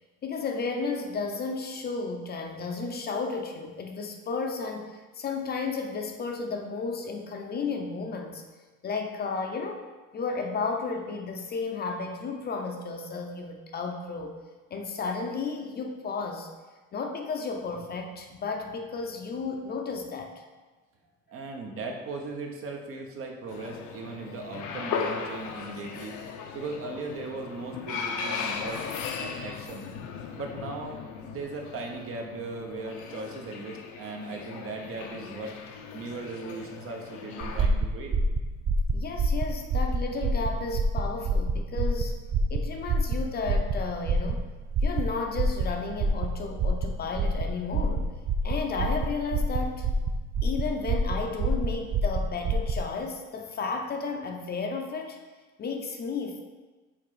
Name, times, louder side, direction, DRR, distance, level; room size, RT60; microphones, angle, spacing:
voice 1, 0.2-8.4 8.8-9.8 10.1-14.3 14.7-16.5 16.9-20.3 38.9-42.1 42.5-44.4 44.8-48.1 48.4-49.9 50.4-55.2 55.6-56.4, left 4 dB, 35° left, 3 dB, 0.6 m, -33 dB
voice 2, 21.3-26.1 26.5-28.9 29.2-29.9 30.4-35.6 35.9-38.2, right 3 dB, 50° right, 2 dB, 0.9 m, -38 dB
sound 1, 23.5-37.7, left 6 dB, 85° left, 0.7 m, -37 dB
sound 2, 37.4-52.8, right 2 dB, 35° right, 0.4 m, -27 dB
5.9 x 4.2 x 4.9 m, 1.3 s
cardioid pair, 165°, 29 cm